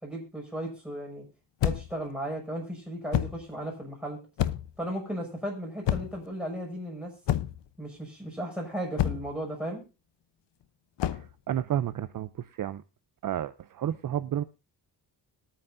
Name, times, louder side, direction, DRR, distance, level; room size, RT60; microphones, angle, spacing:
voice 1, 0.0-1.2 1.6-4.2 4.8-7.1 7.8-9.8, right 1 dB, ahead, -1 dB, 6.2 m, -35 dB
sound 1, 1.6-2.0 3.1-3.4 4.4-4.8 5.8-6.3 7.3-7.7 9.0-9.4 11.0-11.3, left 11 dB, 85° left, 0.8 m, -28 dB
voice 2, 11.1-12.8 13.2-14.4, right 11 dB, 50° right, 12 dB, 0.6 m, -31 dB
21.5 x 9.1 x 2.6 m, 0.31 s
wide cardioid pair, 130°, 41 cm